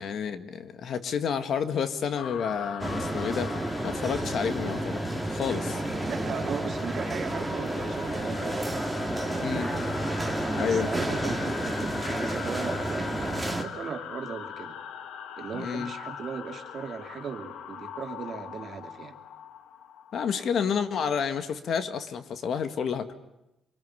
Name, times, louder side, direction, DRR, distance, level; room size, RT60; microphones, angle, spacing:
voice 1, 0.0-3.6 3.8-5.0 5.3-5.8 9.4-9.7 10.5-10.9 15.5-15.9 20.1-23.1, left 7 dB, 65° left, 10 dB, 1.8 m, -30 dB
sound 1, 2.2-20.8, left 8 dB, 80° left, 1.4 m, -42 dB
sound 2, 2.8-13.6, right 1 dB, 5° right, 2.7 m, -31 dB
voice 2, 6.1-8.7 9.2-9.7 10.4-14.8 15.4-19.1, right 6 dB, 55° right, 5 dB, 2.8 m, -38 dB
26.5 x 20.5 x 9.8 m, 0.92 s
cardioid pair, 90°, 0 cm